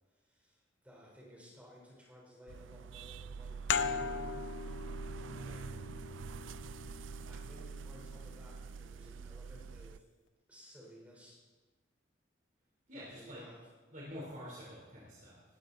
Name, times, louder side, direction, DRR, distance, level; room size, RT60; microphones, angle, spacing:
voice 1, 0.1-4.2 5.3-5.8 6.5-6.9 7.3-10.1 10.5-11.4 12.9-13.7, equal, 10° right, -3 dB, 4.2 m, -57 dB
sound 1, 2.5-10.0, right 5 dB, 85° right, 0.4 m, -45 dB
sound 2, 3.7-9.0, left 6 dB, 70° left, 0.6 m, -40 dB
voice 2, 5.2-5.9 12.9-13.4 13.9-15.4, equal, 45° right, -5 dB, 3.8 m, -48 dB
18.5 x 13.5 x 4.1 m, 1.2 s
head